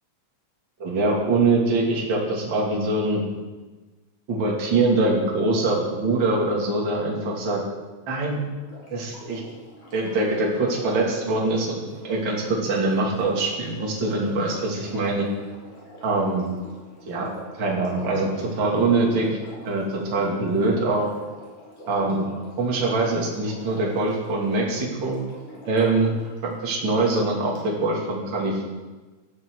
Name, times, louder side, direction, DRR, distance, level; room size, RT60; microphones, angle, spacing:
voice 1, 0.8-3.2 4.3-7.6 8.1-8.4 8.9-9.4 9.9-11.8 12.0-15.3 16.0-16.4 17.1-17.3 17.6-18.3 18.6-19.3 19.6-21.1 21.9-22.2 22.6-25.2 25.7-26.1 26.4-28.6, right 2 dB, 35° right, -3 dB, 3.3 m, -23 dB
Sink (filling or washing), 8.6-26.4 27.5-27.6, equal, 80° left, 6.0 m, -44 dB
17.5 x 13.5 x 4.8 m, 1.2 s
omnidirectional pair, 3.7 m